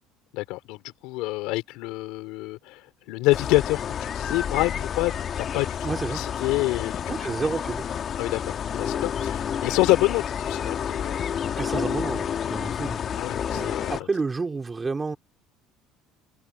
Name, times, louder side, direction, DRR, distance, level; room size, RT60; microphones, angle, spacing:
voice 1, 0.3-7.0 8.2-11.3 13.2-14.0, left 20 dB, 80° left, 2.8 m, -27 dB
sound 1, 3.3-14.0, left 8 dB, 35° left, 1.5 m, -30 dB
voice 2, 5.8-6.3 7.1-7.9 11.6-13.0 13.5-15.2, right 4 dB, 15° right, 2.9 m, -30 dB
cardioid pair, 145°, 0 cm